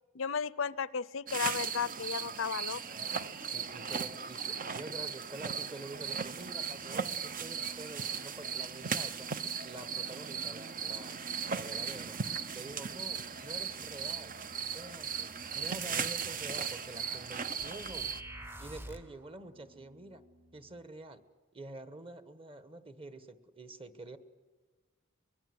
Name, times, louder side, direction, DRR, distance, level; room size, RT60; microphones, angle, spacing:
voice 1, 0.1-2.8, left 6 dB, 70° left, 18 dB, 0.7 m, -34 dB
sound 1, 1.3-18.2, right 6 dB, 45° right, 0.9 m, -37 dB
voice 2, 3.3-9.3 9.6-11.2 11.5-12.2 12.5-14.3 14.7-18.1 18.6-20.2 20.5-21.2 21.5-24.2, right 2 dB, 25° right, 11 dB, 1.4 m, -47 dB
sound 2, 5.8-20.8, right 2 dB, 80° right, 2.7 m, -56 dB
sound 3, 17.6-19.2, right 1 dB, 10° right, 0.9 m, -46 dB
24.0 x 21.5 x 7.9 m, 1.4 s
head